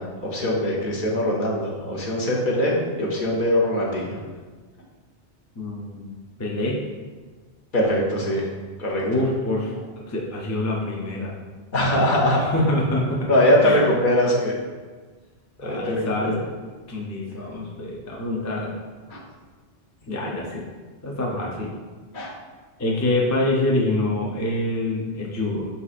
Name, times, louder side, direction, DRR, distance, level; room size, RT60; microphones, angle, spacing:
voice 1, 0.0-4.2 7.7-8.5 8.8-9.0 11.7-12.4 13.3-14.5 15.6-16.3 19.1-19.2 22.1-22.3, left 1 dB, 50° left, -3 dB, 0.9 m, -22 dB
voice 2, 5.6-6.1 6.4-6.8 9.0-9.8 10.1-11.3 12.4-13.3 13.6-13.8 15.6-16.3 16.9-18.7 20.1-20.6 21.0-21.7 22.8-25.7, left 1 dB, 20° left, -3 dB, 0.4 m, -25 dB
5.3 x 4.1 x 2.5 m, 1.4 s
omnidirectional pair, 1.1 m